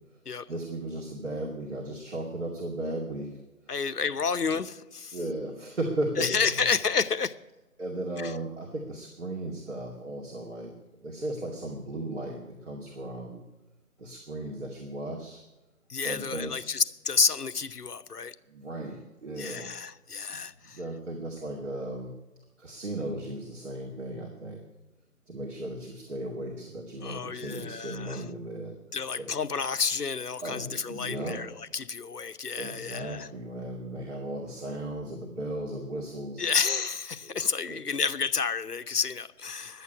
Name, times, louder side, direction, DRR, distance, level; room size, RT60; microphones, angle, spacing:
voice 1, 0.5-3.7 5.1-6.6 7.8-10.7 11.0-13.4 14.0-15.4 16.0-16.7 18.5-19.7 20.3-20.4 20.7-22.1 22.6-24.6 25.3-28.7 29.2-29.3 30.4-31.4 32.6-36.5 37.2-37.8, right 1 dB, 50° right, 2.4 m, -36 dB
voice 2, 3.7-5.2 6.2-7.4 8.2-8.3 15.9-18.3 19.4-20.8 27.0-28.2 28.9-33.3 36.4-39.8, left 5 dB, 85° left, 0.9 m, -30 dB
11.5 x 8.2 x 9.6 m
figure-of-eight pair, 160°, 45 cm